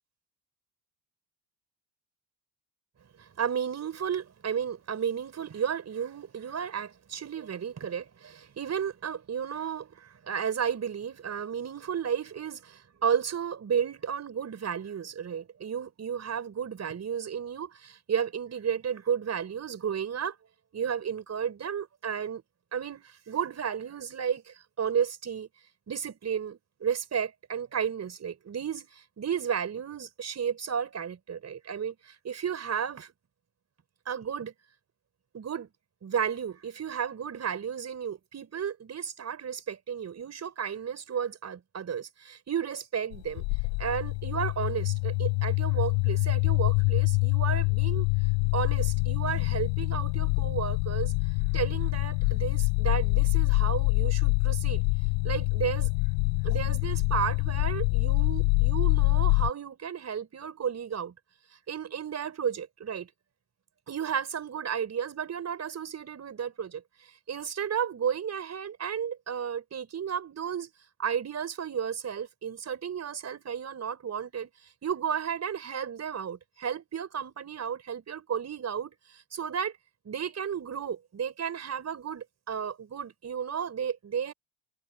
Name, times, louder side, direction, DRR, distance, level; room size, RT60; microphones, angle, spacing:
voice 1, 3.2-20.3 20.7-22.4 22.7-25.5 25.9-33.1 34.1-34.5 35.3-35.7 36.0-43.4 43.8-48.1 48.5-51.1 51.5-54.8 55.2-55.9 56.4-61.1 61.7-63.1 63.9-66.8 67.3-70.7 71.0-74.5 74.8-79.7 80.0-84.3, right 7 dB, 30° right, 4.9 m, -33 dB
sound 1, 43.1-59.5, left 35 dB, 65° left, 3.0 m, -26 dB
hypercardioid pair, 70°, 49 cm